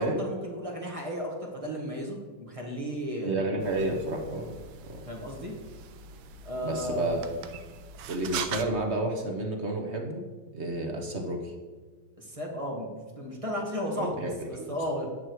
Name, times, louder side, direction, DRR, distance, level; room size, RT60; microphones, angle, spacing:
voice 1, 0.0-3.4 5.1-5.5 6.4-7.3 12.2-15.1, equal, 15° right, -1 dB, 1.5 m, -34 dB
voice 2, 3.2-4.6 4.9-5.0 6.6-7.2 8.1-10.2 10.5-11.5 13.9-14.6, right 2 dB, 45° right, 2 dB, 0.9 m, -30 dB
sound 1, 3.6-8.6, right 7 dB, 75° right, 1.5 m, -41 dB
10.0 x 6.2 x 4.7 m, 1.4 s
omnidirectional pair, 2.3 m